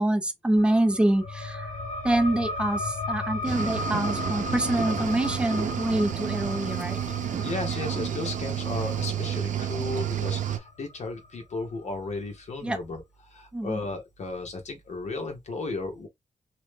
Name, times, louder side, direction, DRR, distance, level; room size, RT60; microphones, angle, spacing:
voice 1, 0.0-1.7 2.0-7.0 12.6-12.8 13.5-13.8, right 1 dB, 10° right, 0.5 m, -25 dB
sound 1, 0.6-11.7, left 3 dB, 85° left, 0.8 m, -36 dB
Cricket / Waves surf, 3.4-10.6, right 9 dB, 85° right, 0.5 m, -30 dB
voice 2, 7.4-16.1, left 3 dB, 65° left, 1.1 m, -34 dB
3.0 x 2.0 x 3.2 m
wide cardioid pair, 160°, 13 cm